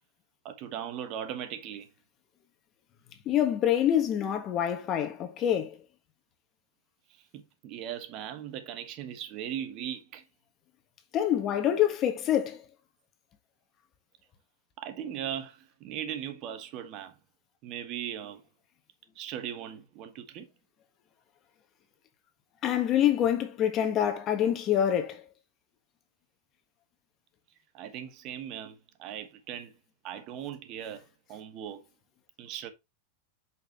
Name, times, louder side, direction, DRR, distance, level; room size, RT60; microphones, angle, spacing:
voice 1, 0.4-1.9 7.1-10.3 14.8-17.1 17.6-18.4 19.1-20.5 27.7-29.7 30.0-31.8 32.4-32.7, right 10 dB, 45° right, 1.2 m, -39 dB
voice 2, 3.2-5.7 11.1-12.6 22.6-25.2, left 10 dB, 40° left, 1.5 m, -26 dB
6.4 x 5.7 x 3.1 m
hypercardioid pair, 95°, 0 cm